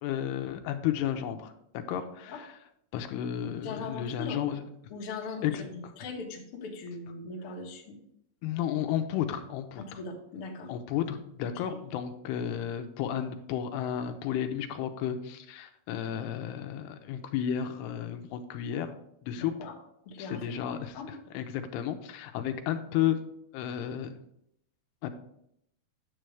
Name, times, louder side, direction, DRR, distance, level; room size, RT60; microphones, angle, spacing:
voice 1, 0.0-2.5 2.9-4.6 5.4-5.6 8.4-10.0 10.7-18.9 19.2-19.5 20.2-23.2 23.5-24.2 25.0-25.1, left 10 dB, 85° left, 7 dB, 2.7 m, -32 dB
voice 2, 3.6-4.5 4.9-8.0 9.7-10.7 19.4-19.7 20.0-20.4 20.9-21.1, left 3 dB, 60° left, -1 dB, 1.4 m, -40 dB
9.9 x 7.6 x 3.4 m, 0.75 s
omnidirectional pair, 4.8 m